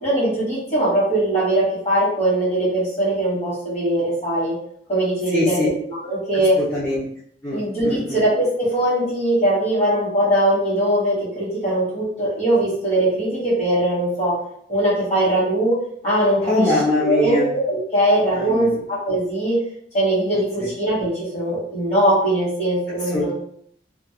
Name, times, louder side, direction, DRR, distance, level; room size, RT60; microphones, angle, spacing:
voice 1, 0.0-4.6 4.9-5.6 6.0-6.6 7.5-14.3 14.7-15.8 16.0-16.7 17.0-19.6 19.9-23.3, right 1 dB, 35° left, -6 dB, 1.1 m, -20 dB
voice 2, 5.3-5.7 6.6-7.1 7.4-8.2 16.5-17.5 18.3-18.8 20.6-20.7 23.1-23.3, left 2 dB, 10° left, -9 dB, 0.4 m, -22 dB
2.3 x 2.1 x 2.8 m, 0.66 s
head